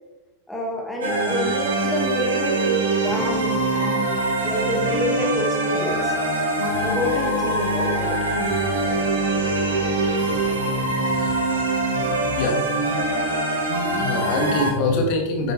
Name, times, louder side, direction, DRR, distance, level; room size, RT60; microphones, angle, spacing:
voice 1, 0.5-4.2 4.4-6.1 6.8-8.2, left 1 dB, 5° left, -1 dB, 1.9 m, -28 dB
sound 1, 1.0-14.7, right 2 dB, 65° right, 2.9 m, -23 dB
voice 2, 10.7-11.3 11.9-12.6 12.9-13.3 13.9-15.5, left 2 dB, 45° left, 2 dB, 2.3 m, -25 dB
10.0 x 9.0 x 3.2 m, 1.0 s
figure-of-eight pair, 90°, 0 cm